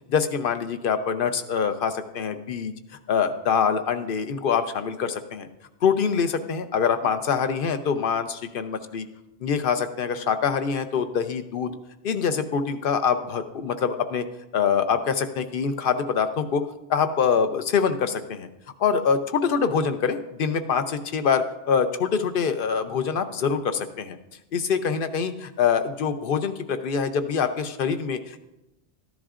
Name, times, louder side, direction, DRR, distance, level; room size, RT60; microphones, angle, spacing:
voice 1, 0.1-2.7 3.1-5.5 5.8-9.1 9.4-11.8 12.0-14.2 14.5-18.5 18.8-24.2 24.5-28.4, left 6 dB, 60° left, 9 dB, 0.8 m, -25 dB
13.5 x 10.5 x 2.5 m, 0.97 s
omnidirectional pair, 1.1 m